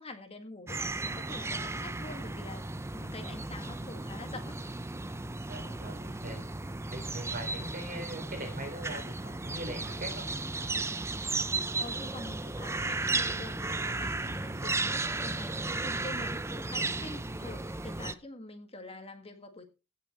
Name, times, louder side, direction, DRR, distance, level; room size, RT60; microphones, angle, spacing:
voice 1, 0.0-4.6 11.8-19.7, left 2 dB, 30° left, 6 dB, 1.8 m, -46 dB
sound 1, 0.7-18.1, right 3 dB, 15° right, 0.6 m, -35 dB
voice 2, 5.5-6.4 6.9-10.3, right 1 dB, 45° right, 5 dB, 4.2 m, -41 dB
17.0 x 6.7 x 4.4 m, 0.30 s
head